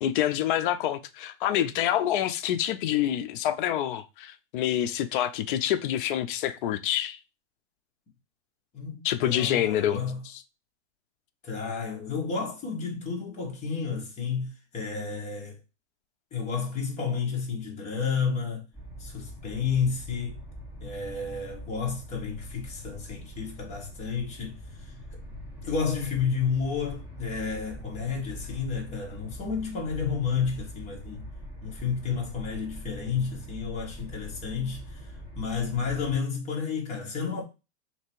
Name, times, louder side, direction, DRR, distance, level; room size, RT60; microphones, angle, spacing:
voice 1, 0.0-7.2 9.0-10.0, left 11 dB, 50° left, 0.5 m, -27 dB
voice 2, 8.7-10.2 11.4-15.6 16.3-18.7 19.0-20.4 20.8-24.9 25.3-25.4 25.6-31.3 31.6-37.4, left 6 dB, 20° left, 1.2 m, -31 dB
sound 1, 18.7-36.2, equal, 5° right, 1.7 m, -43 dB
3.3 x 2.9 x 4.5 m
supercardioid pair, 155°, 35 cm